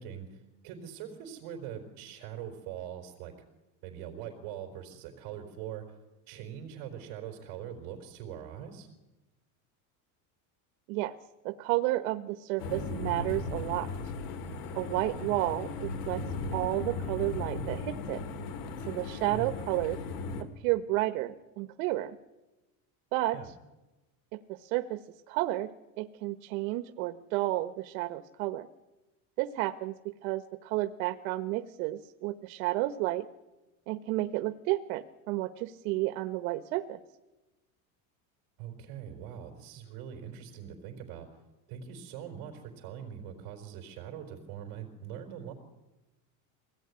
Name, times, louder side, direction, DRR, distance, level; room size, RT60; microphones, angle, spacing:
voice 1, 0.0-3.3 3.8-6.0 6.3-8.9 19.3-19.6 23.3-23.5 38.6-41.3 41.7-45.5, right 9 dB, 55° right, 1 dB, 4.3 m, -42 dB
voice 2, 11.4-13.9 14.7-16.2 16.5-18.2 18.9-20.0 20.6-22.2 23.1-23.4 24.3-25.0 25.3-25.7 26.0-28.7 29.4-33.3 33.9-37.0, right 17 dB, 75° right, 10 dB, 1.2 m, -31 dB
sound 1, 12.6-20.4, left 3 dB, 55° left, 2.6 m, -37 dB
23.5 x 18.0 x 9.8 m, 1.1 s
cardioid pair, 175°, 42 cm